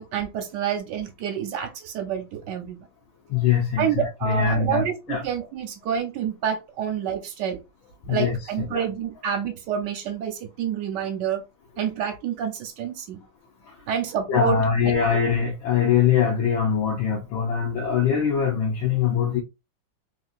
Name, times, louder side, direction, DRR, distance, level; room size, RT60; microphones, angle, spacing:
voice 1, 0.0-2.8 3.8-7.6 8.1-11.4 11.8-13.2 13.9-14.6 14.8-15.2, right 8 dB, 65° right, 1.3 m, -28 dB
voice 2, 3.3-5.2 8.1-8.4 8.7-8.8 14.3-19.4, left 7 dB, 80° left, 1.6 m, -22 dB
3.5 x 2.8 x 2.4 m
omnidirectional pair, 2.1 m